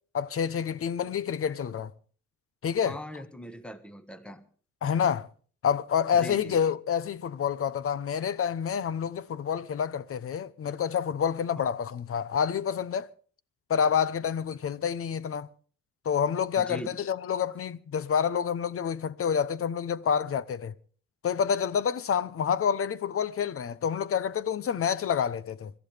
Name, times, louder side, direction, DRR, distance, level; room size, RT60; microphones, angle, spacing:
voice 1, 0.1-1.9 2.6-3.0 4.8-5.3 5.6-13.1 13.7-15.5 16.0-20.7 21.2-25.7, left 7 dB, 45° left, 0.9 m, -28 dB
voice 2, 2.8-4.4 6.2-6.6 11.6-11.7 16.6-17.0, equal, 5° left, 1.5 m, -40 dB
25.5 x 13.5 x 3.4 m
cardioid pair, 90°, 30 cm